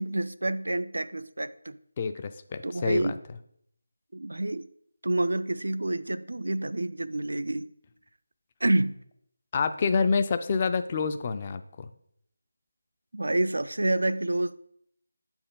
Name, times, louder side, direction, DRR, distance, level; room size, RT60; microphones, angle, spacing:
voice 1, 0.0-1.8 2.6-3.2 4.1-4.7 5.0-7.7 8.6-9.0 13.1-14.6, right 1 dB, 80° right, 0.3 m, -28 dB
voice 2, 2.0-3.1 9.5-11.9, left 5 dB, 30° left, 0.3 m, -27 dB
7.8 x 4.4 x 3.8 m
figure-of-eight pair, 165°, 0 cm